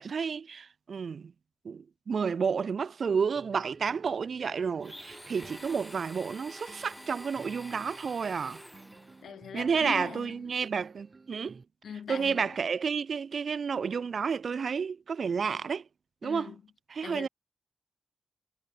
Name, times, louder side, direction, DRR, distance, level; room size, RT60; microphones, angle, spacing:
voice 1, 0.0-1.3 1.6-8.6 9.5-11.6 12.1-15.8 16.2-16.5 16.9-17.3, right 6 dB, 70° right, 0.4 m, -31 dB
sound 1, 3.4-11.6, right 4 dB, 50° right, 4.5 m, -54 dB
Domestic sounds home sounds, 4.8-9.2, equal, 5° left, 3.6 m, -48 dB
voice 2, 9.2-10.3 11.8-12.5 16.2-16.6 17.0-17.3, left 7 dB, 85° left, 0.6 m, -40 dB
cardioid pair, 45°, 0 cm